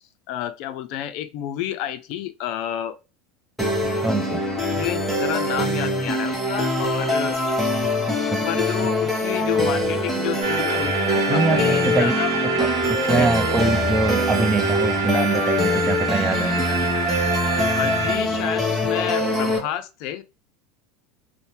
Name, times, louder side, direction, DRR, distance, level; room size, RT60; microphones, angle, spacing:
voice 1, 0.3-2.9 4.7-7.4 8.5-12.3 13.1-13.4 16.7-16.8 17.7-20.2, left 11 dB, 60° left, 0.4 m, -30 dB
sound 1, 3.6-19.6, left 1 dB, 5° left, 1.0 m, -23 dB
voice 2, 4.0-4.4 8.1-8.5 11.3-12.1 12.6-16.6, right 3 dB, 20° right, 0.5 m, -24 dB
Wind instrument woodwind instrument, 9.0-12.1 12.5-16.0, left 5 dB, 40° left, 0.7 m, -36 dB
sound 2, 10.4-18.2, right 5 dB, 75° right, 0.7 m, -27 dB
2.6 x 2.1 x 3.0 m
supercardioid pair, 105°, 0 cm